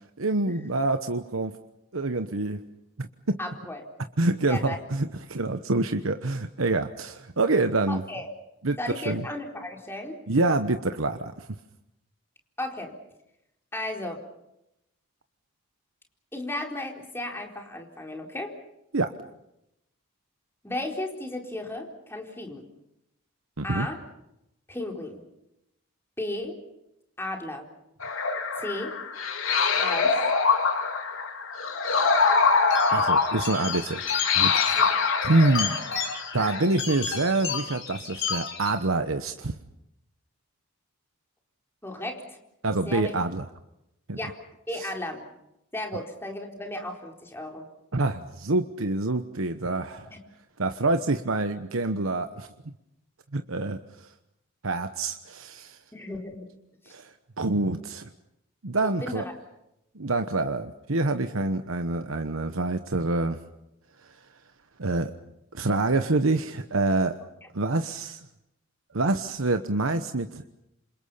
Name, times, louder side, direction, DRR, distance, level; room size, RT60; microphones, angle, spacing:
voice 1, 0.2-1.6 1.9-2.6 3.0-3.4 4.2-8.0 8.6-9.3 10.3-11.5 18.9-19.1 23.6-23.9 32.9-34.0 34.4-35.0 35.2-35.8 36.3-39.5 42.6-43.5 44.1-44.2 44.7-44.9 47.9-50.1 50.6-52.5 53.3-54.1 54.6-55.8 56.9-58.1 58.6-59.2 59.9-63.4 64.8-65.1 65.5-67.2 67.5-68.3 68.9-70.4, right 2 dB, 80° right, 8 dB, 1.1 m, -26 dB
voice 2, 3.4-3.8 4.4-4.8 7.9-8.3 8.8-10.2 12.6-12.9 13.7-14.2 16.3-18.5 20.6-22.6 23.6-24.0 24.7-25.2 26.2-26.6 27.2-27.7 28.6-28.9 29.5-30.2 34.8-34.9 41.8-42.4 42.9-43.1 44.1-44.4 44.7-45.2 45.7-47.7 50.1-50.2 55.9-56.5 56.8-56.9 58.8-59.3, left 1 dB, 10° left, 2 dB, 4.2 m, -34 dB
sound 1, 28.0-36.6, left 5 dB, 75° left, 3.7 m, -24 dB
sound 2, 32.7-38.7, left 6 dB, 60° left, 6.8 m, -33 dB
28.5 x 26.5 x 5.7 m, 0.85 s
head